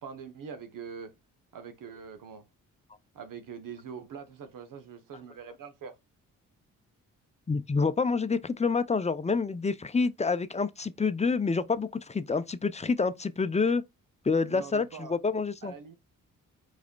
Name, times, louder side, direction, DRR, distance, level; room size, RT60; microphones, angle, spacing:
voice 1, 0.0-1.1 1.5-2.4 3.1-5.9 9.7-9.8 14.5-15.2 15.6-15.9, right 6 dB, 65° right, 0.9 m, -43 dB
voice 2, 7.5-13.8 14.2-15.7, left 4 dB, 20° left, 0.6 m, -28 dB
4.8 x 4.2 x 2.3 m
supercardioid pair, 50°, 36 cm